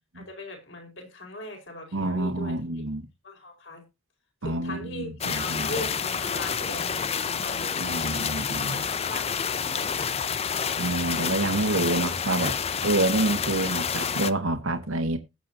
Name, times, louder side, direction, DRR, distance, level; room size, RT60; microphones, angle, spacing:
voice 1, 0.1-2.8 3.2-3.8 4.4-7.7 8.6-10.4, left 1 dB, 55° left, 4.8 m, -40 dB
voice 2, 1.9-3.1 4.4-5.8 7.8-8.9 10.8-12.5 12.8-15.2, right 2 dB, 70° right, 1.4 m, -27 dB
sound 1, 5.2-14.3, left 6 dB, 30° left, 0.5 m, -29 dB
20.0 x 7.7 x 2.7 m
head